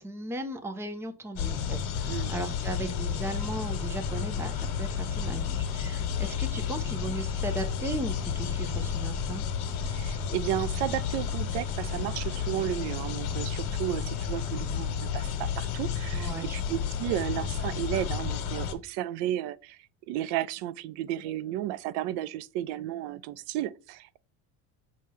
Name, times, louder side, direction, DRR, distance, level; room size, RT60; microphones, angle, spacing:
voice 1, 0.0-9.5 16.1-16.8, right 2 dB, 5° right, 0.5 m, -37 dB
sound 1, 1.4-18.7, left 7 dB, 65° left, 1.4 m, -31 dB
voice 2, 9.8-19.8 20.1-24.2, right 13 dB, 75° right, 0.6 m, -33 dB
6.2 x 2.8 x 5.4 m
cardioid pair, 155°, 41 cm